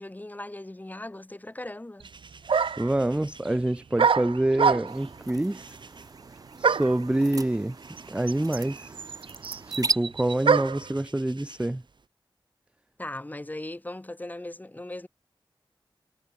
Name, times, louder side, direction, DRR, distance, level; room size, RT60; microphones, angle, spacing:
voice 1, 0.0-2.1 13.0-15.1, left 1 dB, 20° left, 6.3 m, -38 dB
sound 1, 2.0-12.1, right 4 dB, 60° right, 7.0 m, -54 dB
sound 2, 2.0-2.1 2.5-3.0 4.0-5.1 6.6-7.0 8.0-8.1 8.3-10.9, right 6 dB, 80° right, 0.7 m, -25 dB
voice 2, 2.8-5.8 6.6-7.8 8.1-9.0 9.7-11.8, right 1 dB, 10° right, 0.6 m, -26 dB
sound 3, 4.9-9.9, right 3 dB, 45° right, 1.4 m, -36 dB
wide cardioid pair, 110°, 9 cm